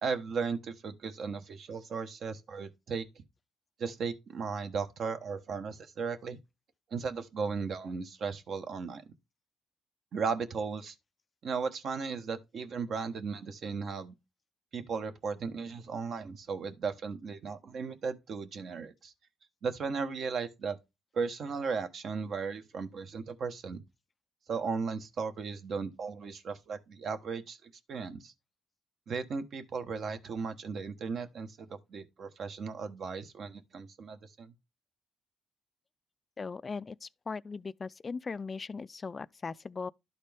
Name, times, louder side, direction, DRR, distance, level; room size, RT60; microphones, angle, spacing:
voice 1, 0.0-3.1 3.8-6.4 6.9-9.0 10.1-11.0 11.4-14.1 14.7-19.1 19.6-20.8 21.1-23.8 24.5-28.3 29.1-34.5, right 5 dB, 60° right, 1.1 m, -36 dB
voice 2, 36.4-39.9, left 4 dB, 35° left, 0.3 m, -39 dB
12.0 x 4.2 x 3.5 m
cardioid pair, 90°, 0 cm